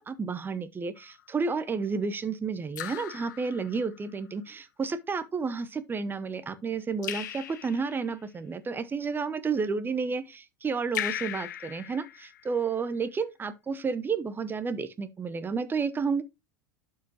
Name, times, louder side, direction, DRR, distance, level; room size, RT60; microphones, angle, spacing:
voice 1, 0.0-16.2, right 5 dB, 20° right, 0.9 m, -31 dB
Raindrop / Drip, 1.0-1.4 2.8-4.1 7.0-8.1 11.0-12.7, left 11 dB, 65° left, 0.7 m, -38 dB
12.0 x 4.8 x 2.9 m
figure-of-eight pair, 80°, 10 cm